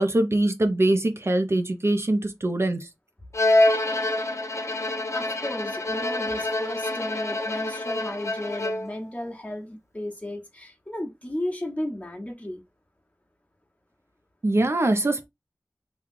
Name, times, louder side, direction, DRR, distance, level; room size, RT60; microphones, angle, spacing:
voice 1, 0.0-2.9 14.4-15.3, right 1 dB, 50° right, 0.6 m, -23 dB
Bowed string instrument, 3.3-9.0, left 1 dB, 60° left, 0.8 m, -26 dB
voice 2, 5.1-12.6, left 1 dB, 25° left, 1.1 m, -34 dB
3.0 x 2.3 x 3.7 m
wide cardioid pair, 50°, 6 cm